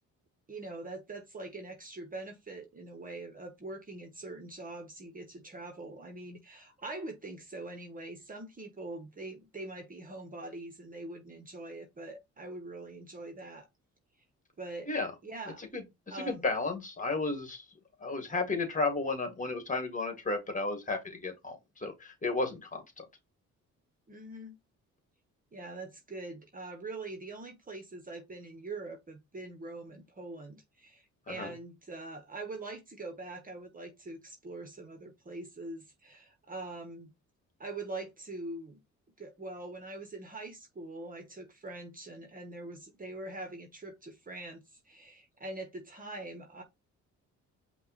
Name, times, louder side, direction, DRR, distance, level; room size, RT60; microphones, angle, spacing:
voice 1, 0.5-13.7 14.6-14.9 15.2-15.6 16.1-16.4 24.1-24.5 25.5-37.1 37.6-38.8 39.2-46.6, right 2 dB, 30° right, 1.0 m, -43 dB
voice 2, 15.7-17.6 18.0-23.0 31.3-31.5, left 3 dB, 25° left, 1.7 m, -33 dB
5.4 x 2.3 x 4.1 m
cardioid pair, 90°, 30 cm